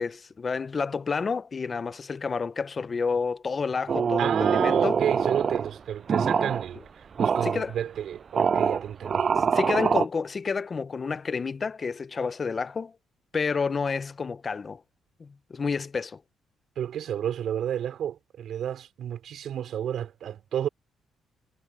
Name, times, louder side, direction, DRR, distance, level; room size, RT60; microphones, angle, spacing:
voice 1, 0.0-5.0 7.4-7.7 9.3-12.9 13.3-14.8 15.2-16.2, left 5 dB, 35° left, 0.9 m, -29 dB
sound 1, 3.9-5.7 6.1-6.6 7.2-7.6 8.3-10.0, right 6 dB, 45° right, 0.4 m, -24 dB
voice 2, 4.2-9.3 16.8-20.7, right 10 dB, 70° right, 5.8 m, -31 dB
cardioid pair, 90°, 0 cm